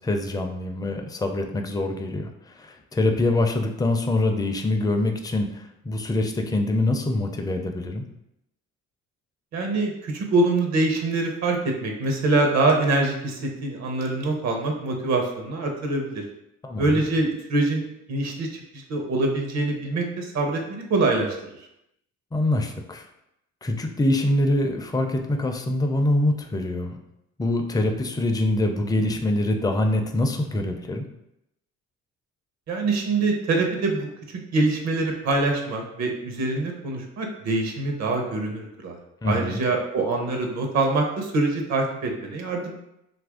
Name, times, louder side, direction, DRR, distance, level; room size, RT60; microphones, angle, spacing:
voice 1, 0.0-8.0 16.6-17.0 22.3-23.1 23.6-27.0 27.4-31.1 39.2-39.6, left 1 dB, 15° left, 4 dB, 0.4 m, -24 dB
voice 2, 9.5-16.2 16.8-17.8 18.1-18.6 18.9-21.3 32.7-34.1 34.5-39.0 39.2-42.7, right 2 dB, 60° right, 2 dB, 0.8 m, -24 dB
2.8 x 2.5 x 3.5 m, 0.84 s
cardioid pair, 90°, 30 cm